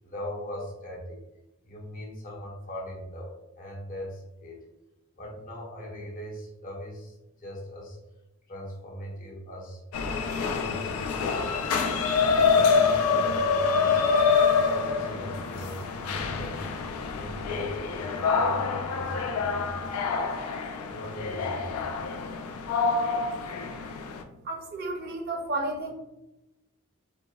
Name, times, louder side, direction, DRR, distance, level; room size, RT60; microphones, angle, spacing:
voice 1, 0.0-1.2 1.6-4.6 5.2-8.0 8.5-9.8 10.5-11.8 12.4-14.0 14.4-20.2 20.9-21.8, equal, 40° left, -2 dB, 0.6 m, -40 dB
sound 1, 9.9-24.2, left 5 dB, 90° left, 0.3 m, -26 dB
voice 2, 24.4-25.9, right 2 dB, 50° right, 2 dB, 0.5 m, -32 dB
2.7 x 2.0 x 2.2 m, 0.92 s
head